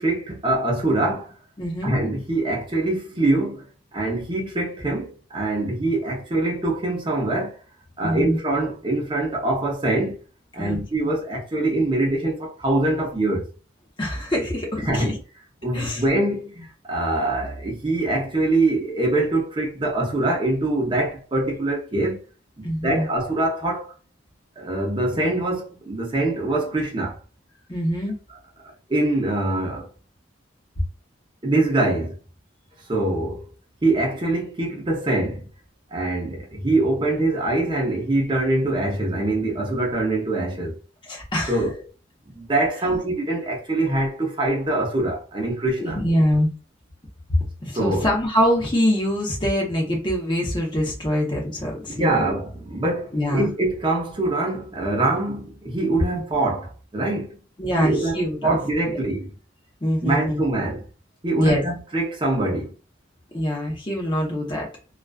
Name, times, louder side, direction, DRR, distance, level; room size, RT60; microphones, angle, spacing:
voice 1, 0.0-1.3 1.8-3.6 3.9-7.6 8.0-10.2 10.5-13.5 14.8-15.2 15.6-22.2 22.6-23.9 24.6-27.2 28.9-29.9 31.4-32.2 32.9-33.5 33.8-35.4 35.9-40.8 41.5-41.8 42.3-46.0 47.7-48.1 51.9-57.4 57.8-59.3 60.0-60.8 61.2-62.7, right 2 dB, 25° right, 0.6 m, -24 dB
voice 2, 1.6-2.0 8.0-8.4 10.6-10.8 14.0-15.2 15.7-16.0 22.6-23.1 27.7-28.1 41.1-41.6 45.8-46.5 47.3-52.3 53.1-53.5 57.6-58.6 58.9-59.0 59.8-60.4 61.4-61.6 63.3-64.7, equal, 25° left, 0.7 m, -24 dB
2.4 x 2.3 x 2.2 m
head